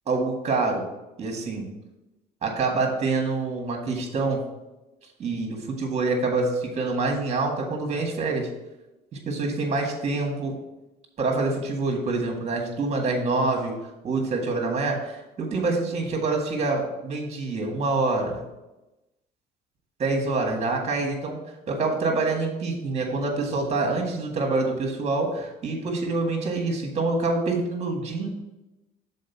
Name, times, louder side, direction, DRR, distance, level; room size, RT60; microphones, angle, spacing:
voice 1, 0.1-0.8 1.2-1.7 2.4-4.4 5.2-8.5 9.1-10.6 11.2-13.7 14.0-18.4 20.0-21.4 21.7-28.3, right 3 dB, 40° right, 2 dB, 1.8 m, -26 dB
6.4 x 4.2 x 5.7 m, 1.0 s
cardioid pair, 110°, 17 cm